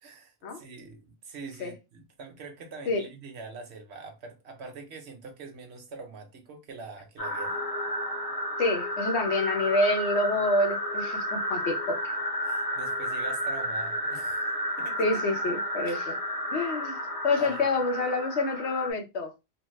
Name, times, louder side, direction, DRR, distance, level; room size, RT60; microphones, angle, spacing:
voice 1, 0.0-7.6 12.4-15.1 17.4-17.6, right 4 dB, 75° right, 1.1 m, -44 dB
sound 1, 7.2-18.9, equal, 35° left, 1.0 m, -32 dB
voice 2, 8.6-12.0 15.0-16.2 16.5-17.0 17.2-19.3, left 2 dB, 80° left, 1.0 m, -27 dB
3.2 x 2.1 x 3.1 m
omnidirectional pair, 1.1 m